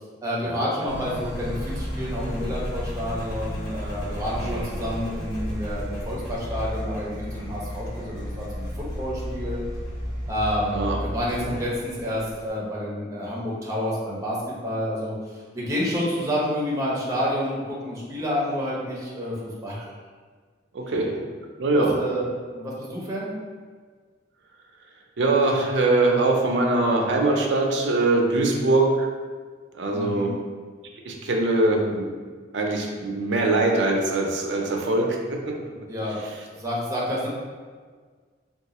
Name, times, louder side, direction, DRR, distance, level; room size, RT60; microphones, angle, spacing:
voice 1, 0.2-9.6 10.3-14.4 14.6-19.3 19.6-19.9 21.7-22.2 22.5-23.3 28.3-28.7 29.9-30.4 35.9-37.3, equal, 15° right, -6 dB, 0.7 m, -29 dB
Engine, 0.9-12.5, equal, 65° left, 1.4 m, -33 dB
voice 2, 20.7-21.1 21.6-22.0 25.2-29.1 29.8-30.3 31.0-32.1 32.5-35.5, right 2 dB, 65° right, 1 dB, 0.5 m, -22 dB
3.7 x 2.3 x 2.9 m, 1.6 s
head